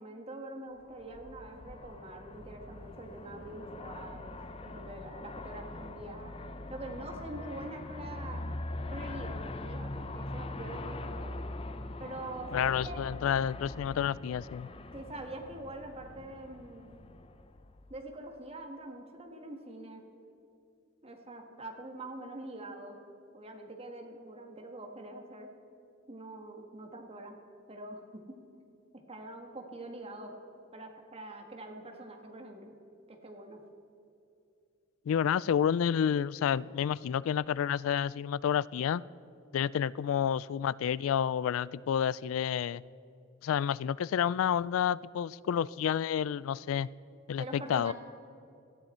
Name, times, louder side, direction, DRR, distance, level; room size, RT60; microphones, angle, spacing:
voice 1, 0.0-6.3 6.7-8.4 8.9-11.4 12.0-13.0 14.9-16.9 17.9-20.0 21.0-23.0 23.3-25.5 26.1-27.4 27.7-28.4 28.9-30.3 30.7-32.7 33.1-33.6 47.4-47.9, right 2 dB, 30° right, 3 dB, 1.6 m, -44 dB
Aircraft, 0.9-18.2, left 2 dB, 30° left, 0.6 m, -42 dB
voice 2, 12.5-14.7 35.1-39.0 39.5-42.8 43.4-46.9 47.3-47.9, left 8 dB, 90° left, 21 dB, 0.3 m, -29 dB
18.0 x 13.0 x 4.4 m, 2.7 s
head